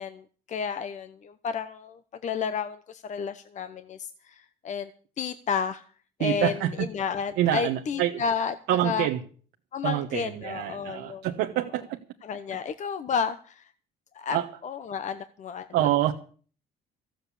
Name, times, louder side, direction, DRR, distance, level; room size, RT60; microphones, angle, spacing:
voice 1, 0.0-4.9 5.2-5.8 6.2-8.5 8.8-9.1 9.7-11.3 12.2-13.7 14.1-16.1, left 6 dB, 45° left, 11 dB, 0.9 m, -32 dB
voice 2, 6.2-6.9 7.4-8.2 8.7-9.2 9.8-12.0 14.3-14.5 15.7-16.1, right 13 dB, 85° right, 3 dB, 1.2 m, -26 dB
14.5 x 7.8 x 8.5 m, 0.43 s
cardioid pair, 110°, 17 cm